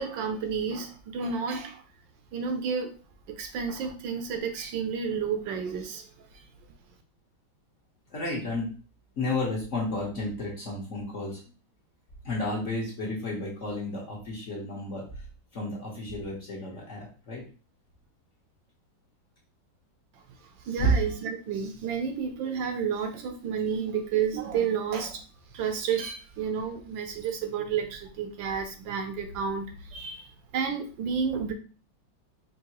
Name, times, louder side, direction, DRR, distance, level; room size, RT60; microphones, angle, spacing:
voice 1, 0.0-1.8 2.3-3.0 3.3-6.3 20.6-25.2 25.5-31.5, right 6 dB, 75° right, 6 dB, 1.3 m, -31 dB
voice 2, 8.1-8.7 9.2-11.5 12.2-15.2 15.5-17.4 20.8-20.9, left 1 dB, 45° left, -4 dB, 1.2 m, -31 dB
4.6 x 2.9 x 2.9 m, 0.36 s
omnidirectional pair, 2.2 m